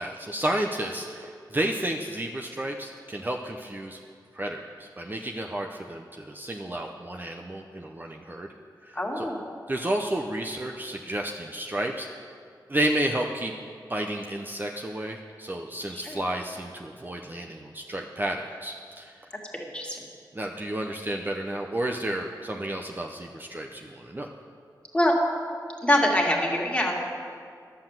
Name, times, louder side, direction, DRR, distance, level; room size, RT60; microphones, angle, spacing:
voice 1, 0.0-4.0 4.3-8.5 8.8-9.3 9.7-12.1 12.7-13.5 13.9-19.3 20.3-24.3, right 1 dB, 25° right, 1 dB, 0.7 m, -31 dB
voice 2, 9.0-9.4 15.9-16.2 19.5-20.0 24.9-25.1 25.8-26.9, left 1 dB, 15° left, -2 dB, 2.2 m, -24 dB
11.5 x 7.9 x 7.4 m, 2.2 s
wide cardioid pair, 70°, 8 cm